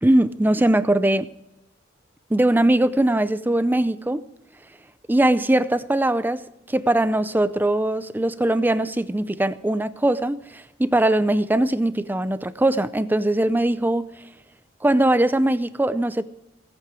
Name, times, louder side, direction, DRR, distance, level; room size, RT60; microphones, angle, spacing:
voice 1, 0.0-1.3 2.3-4.3 4.6-4.8 5.1-14.3 14.8-16.2, right 1 dB, 10° right, 0.4 m, -21 dB
19.5 x 8.7 x 4.9 m
head